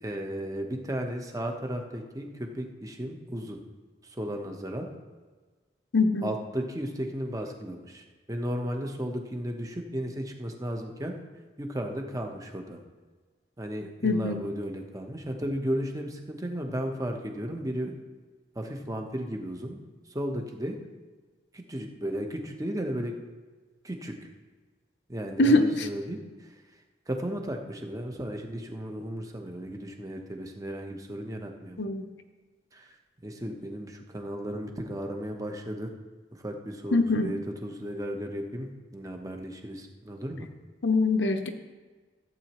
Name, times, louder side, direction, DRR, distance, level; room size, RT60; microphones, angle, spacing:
voice 1, 0.0-3.6 4.0-4.9 6.2-11.1 11.6-12.8 13.6-17.9 18.5-19.8 20.1-20.8 21.5-23.1 23.8-24.2 25.1-26.5 27.1-31.8 32.7-33.0 33.2-35.9 36.3-38.7 38.9-40.5, equal, 20° right, 3 dB, 1.0 m, -34 dB
voice 2, 5.9-6.3 14.0-14.4 25.4-25.9 31.8-32.0 36.9-37.3 40.8-41.5, left 2 dB, 85° left, 6 dB, 0.8 m, -23 dB
15.0 x 8.3 x 3.0 m, 1.4 s
head